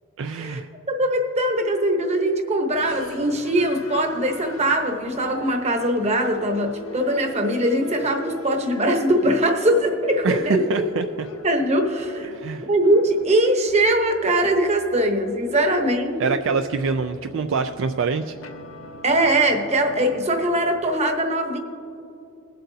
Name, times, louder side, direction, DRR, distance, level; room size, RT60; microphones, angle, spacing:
voice 1, 0.2-0.7 10.2-11.3 12.3-12.7 16.2-18.3, right 5 dB, 65° right, 8 dB, 0.4 m, -25 dB
voice 2, 0.9-10.6 11.4-12.3 12.6-16.3 19.0-21.6, right 1 dB, 30° right, 4 dB, 1.0 m, -21 dB
sound 1, 2.7-20.7, equal, 75° left, 0.9 m, -42 dB
21.0 x 7.7 x 2.8 m, 2.7 s
head